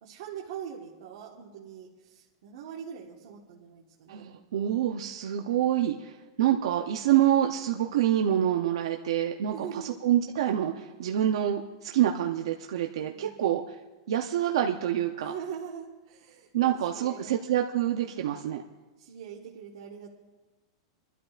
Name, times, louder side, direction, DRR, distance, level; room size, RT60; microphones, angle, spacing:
voice 1, 0.0-4.7 9.5-9.9 13.0-13.4 15.2-17.4 19.0-20.1, right 8 dB, 55° right, -3 dB, 1.5 m, -42 dB
voice 2, 4.1-13.8 14.1-15.3 16.5-18.6, right 11 dB, 70° right, 3 dB, 0.7 m, -27 dB
27.0 x 12.0 x 2.5 m, 1.2 s
supercardioid pair, 175°, 3 cm